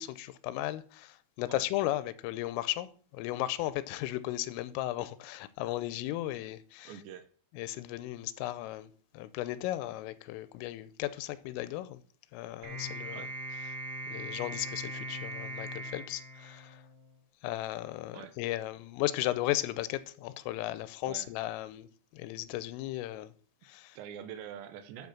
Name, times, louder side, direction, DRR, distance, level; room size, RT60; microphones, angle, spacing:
voice 1, 0.0-6.9 7.6-12.0 12.3-13.3 14.1-16.8 17.4-21.9 22.1-23.3 23.6-24.0, left 15 dB, 90° left, 3.4 m, -35 dB
voice 2, 6.8-7.3 13.1-13.4 18.1-18.4 21.1-21.3 23.9-25.1, right 9 dB, 75° right, 3.0 m, -45 dB
sound 1, 12.6-17.1, right 1 dB, 40° right, 2.4 m, -40 dB
10.0 x 9.5 x 6.1 m
omnidirectional pair, 5.8 m